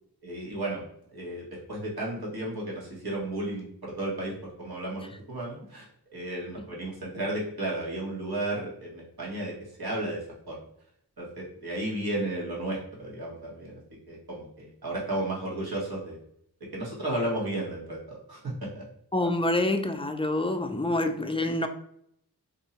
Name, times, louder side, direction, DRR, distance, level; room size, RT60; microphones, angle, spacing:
voice 1, 0.2-0.8 1.1-5.9 6.1-10.6 11.2-13.8 14.1-16.2 16.7-18.8, right 1 dB, 65° right, 1.5 m, -33 dB
voice 2, 19.1-21.7, left 1 dB, 15° left, 0.4 m, -27 dB
2.7 x 2.7 x 4.2 m
cardioid pair, 50°, 40 cm